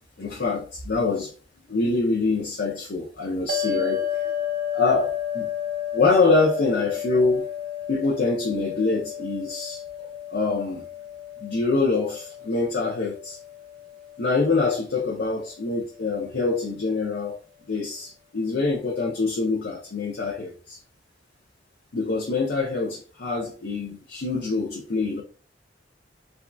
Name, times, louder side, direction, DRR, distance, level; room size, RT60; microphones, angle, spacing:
voice 1, 0.2-1.3 1.7-4.3 4.7-5.5 5.9-7.5 7.9-10.8 11.4-13.4 14.2-17.4 17.7-20.8 21.9-25.2, left 3 dB, 60° left, 0.6 m, -25 dB
sound 1, 3.5-16.0, left 9 dB, 50° right, 0.6 m, -32 dB
3.5 x 2.5 x 2.3 m
head